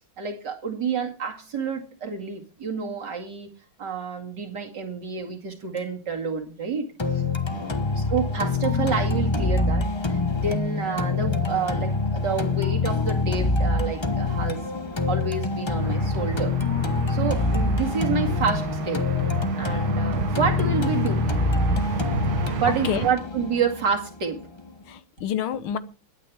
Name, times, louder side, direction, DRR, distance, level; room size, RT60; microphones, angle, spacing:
voice 1, 0.2-3.5 3.8-7.2 8.0-14.8 15.1-16.6 17.1-19.1 19.6-21.2 22.6-24.4, right 5 dB, 60° right, 2.9 m, -29 dB
sound 1, 7.0-25.0, left 3 dB, 25° left, 0.5 m, -25 dB
voice 2, 7.5-8.0 15.8-16.1 19.6-19.8 22.7-23.1 24.9-25.8, left 9 dB, 90° left, 1.9 m, -30 dB
sound 2, 15.8-23.1, right 9 dB, 90° right, 1.8 m, -32 dB
21.5 x 9.1 x 3.5 m
omnidirectional pair, 2.2 m